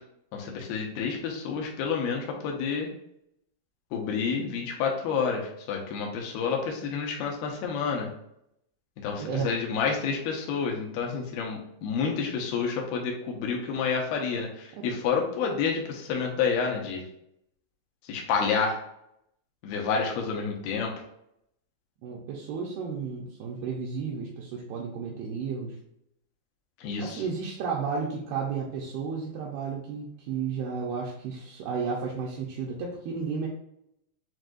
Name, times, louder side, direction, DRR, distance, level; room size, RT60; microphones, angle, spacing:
voice 1, 0.3-2.9 3.9-8.1 9.0-17.0 18.1-18.8 19.6-20.9 26.8-27.2, left 5 dB, 75° left, 0 dB, 2.4 m, -29 dB
voice 2, 9.2-9.5 14.8-14.9 22.0-25.8 27.0-33.5, right 5 dB, 80° right, -2 dB, 2.2 m, -33 dB
7.5 x 2.7 x 2.5 m, 0.78 s
omnidirectional pair, 5.1 m